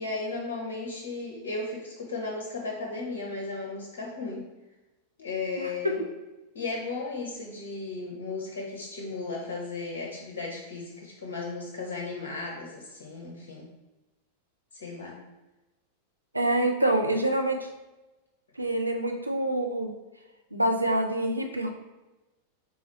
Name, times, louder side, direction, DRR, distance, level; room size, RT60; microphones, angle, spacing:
voice 1, 0.0-4.5 5.2-6.0 6.5-13.7 14.7-15.2 16.6-16.7, left 3 dB, 60° left, -1 dB, 0.7 m, -35 dB
voice 2, 16.3-17.7 18.6-19.9 20.5-21.7, right 1 dB, 85° right, 4 dB, 0.5 m, -26 dB
3.9 x 3.7 x 3.0 m, 1.1 s
figure-of-eight pair, 90°, 0 cm